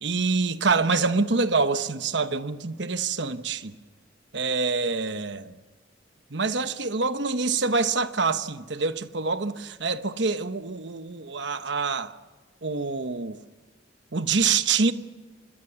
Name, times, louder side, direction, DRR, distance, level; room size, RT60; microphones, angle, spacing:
voice 1, 0.0-3.8 4.3-5.6 6.3-12.2 12.6-13.4 14.1-14.9, right 4 dB, 65° right, 1.1 m, -26 dB
26.0 x 21.5 x 7.0 m
head